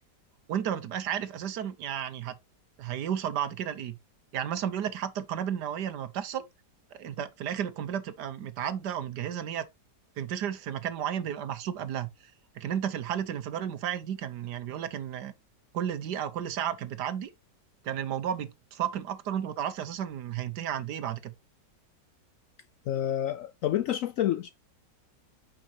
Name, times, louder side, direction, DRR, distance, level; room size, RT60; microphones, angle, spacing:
voice 1, 0.5-2.4 2.8-4.0 4.3-6.4 6.9-9.7 10.2-12.1 12.5-15.3 15.7-17.3 17.8-21.3, right 9 dB, 70° right, 1.4 m, -33 dB
voice 2, 22.9-24.5, left 11 dB, 80° left, 0.7 m, -28 dB
9.2 x 5.3 x 2.9 m
omnidirectional pair, 1.9 m